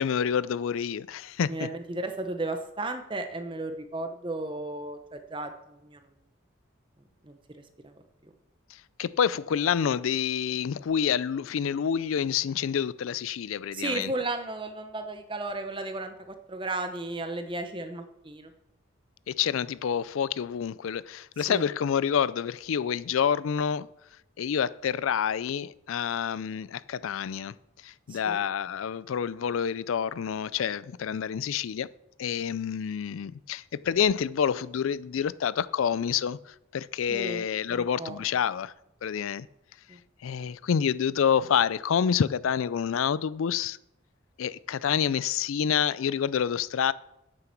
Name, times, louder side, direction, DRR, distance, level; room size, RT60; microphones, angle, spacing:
voice 1, 0.0-1.7 8.7-14.1 19.3-23.9 24.4-27.6 27.8-31.9 32.2-38.7 39.0-39.5 40.2-43.8 44.4-46.9, left 8 dB, 80° left, 0.4 m, -28 dB
voice 2, 1.5-6.0 7.2-7.4 7.8-8.3 13.7-18.5 21.5-21.6 28.1-28.4 37.1-38.2 39.9-40.0, right 2 dB, 25° right, 0.9 m, -34 dB
9.0 x 7.7 x 5.9 m
head